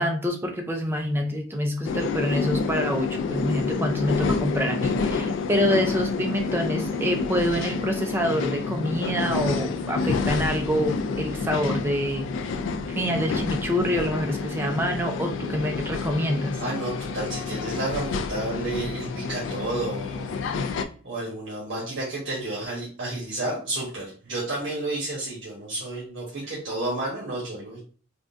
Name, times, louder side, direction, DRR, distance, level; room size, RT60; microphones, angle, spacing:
voice 1, 0.0-12.3 12.9-16.6, equal, 10° right, 3 dB, 0.4 m, -26 dB
sound 1, 1.8-20.8, left 4 dB, 70° left, 0.3 m, -29 dB
voice 2, 16.6-20.4 21.0-27.8, right 2 dB, 75° right, -5 dB, 1.1 m, -31 dB
3.6 x 2.2 x 2.5 m, 0.40 s
head